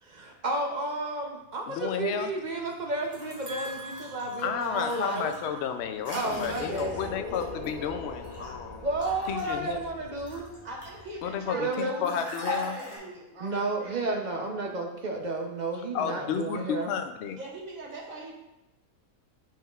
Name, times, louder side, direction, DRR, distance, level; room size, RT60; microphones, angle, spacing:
voice 1, 0.0-5.3 6.1-7.0 8.8-10.7 11.5-12.1 13.4-16.9, right 2 dB, 45° right, 2 dB, 0.6 m, -32 dB
sound 1, 1.4-11.6, left 1 dB, 40° left, 1.0 m, -49 dB
voice 2, 1.7-2.3 4.4-8.8 9.3-9.8 11.2-12.8 15.9-17.4, left 8 dB, 65° left, 7 dB, 0.7 m, -32 dB
sound 2, 3.0-8.5 9.0-11.1 12.0-13.0, left 1 dB, 15° right, 2.2 m, -40 dB
sound 3, 5.8-10.7, left 3 dB, 90° left, 1.8 m, -43 dB
voice 3, 10.6-14.5 17.3-18.3, right 2 dB, 70° right, -2 dB, 1.6 m, -43 dB
7.2 x 5.6 x 2.4 m, 0.94 s
omnidirectional pair, 1.5 m